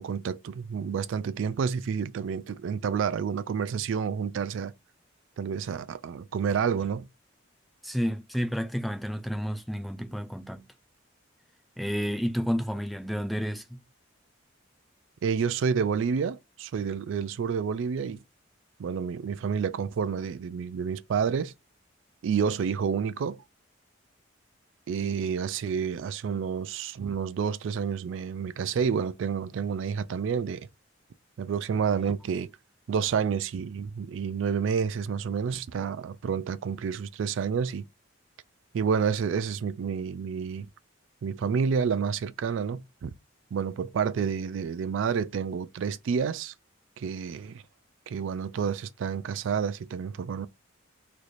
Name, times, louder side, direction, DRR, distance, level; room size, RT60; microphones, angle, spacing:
voice 1, 0.0-4.7 5.4-7.1 15.2-18.2 18.8-21.5 22.2-23.4 24.9-30.7 31.4-32.5 32.9-37.8 38.7-40.7 41.2-43.1 43.5-46.5 47.0-47.6 48.1-50.5, right 6 dB, 70° right, 0.3 m, -29 dB
voice 2, 7.8-10.7 11.8-13.8, equal, ahead, 0.4 m, -30 dB
3.1 x 2.5 x 4.0 m
head